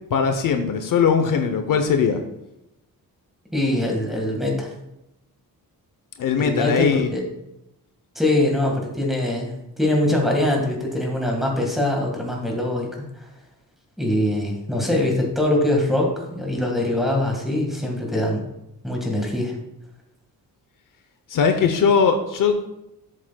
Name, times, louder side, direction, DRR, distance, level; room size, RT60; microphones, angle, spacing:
voice 1, 0.1-2.2 6.2-7.1 21.3-22.5, left 6 dB, 65° left, 7 dB, 0.8 m, -20 dB
voice 2, 3.5-4.7 6.4-7.2 8.2-12.9 14.0-18.4 18.8-19.5, left 1 dB, ahead, -1 dB, 1.7 m, -23 dB
12.0 x 7.5 x 2.3 m, 0.87 s
wide cardioid pair, 165°, 35 cm